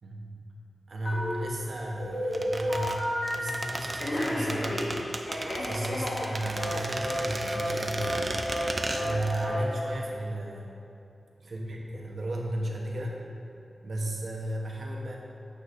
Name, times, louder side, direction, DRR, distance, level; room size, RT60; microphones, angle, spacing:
voice 1, 0.0-0.3 0.9-3.1 3.3-4.9 5.6-8.1 8.9-10.8 11.4-13.2 13.8-15.2, right 1 dB, 70° right, -1 dB, 1.1 m, -34 dB
Telephone, 1.0-1.6 2.0-3.6 4.0-6.8 7.0-7.3 7.5-7.7 8.0-8.2 8.5-8.7 8.9-9.2 9.4-9.6, equal, 80° left, 1.9 m, -31 dB
sound 1, 2.3-9.5 9.8-9.9, right 2 dB, 35° right, 0.5 m, -35 dB
8.7 x 3.4 x 6.7 m, 2.6 s
wide cardioid pair, 120°, 0 cm